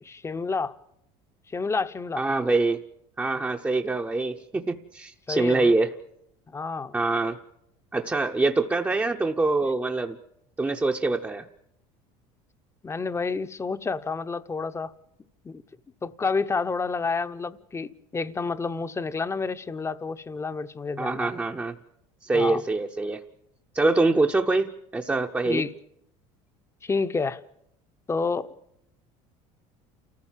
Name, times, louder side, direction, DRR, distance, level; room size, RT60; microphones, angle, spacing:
voice 1, 0.0-0.7 1.5-2.2 5.3-5.7 6.5-7.0 12.8-14.9 15.4-15.6 16.0-21.4 22.3-22.6 25.5-25.7 26.8-27.4 28.1-28.5, left 4 dB, 20° left, 0.8 m, -29 dB
voice 2, 2.1-2.8 3.2-5.9 6.9-7.4 7.9-10.2 10.6-11.4 21.0-21.8 22.2-23.2 23.7-25.6, right 3 dB, 15° right, 0.8 m, -24 dB
28.5 x 14.5 x 7.4 m
supercardioid pair, 110°, 15 cm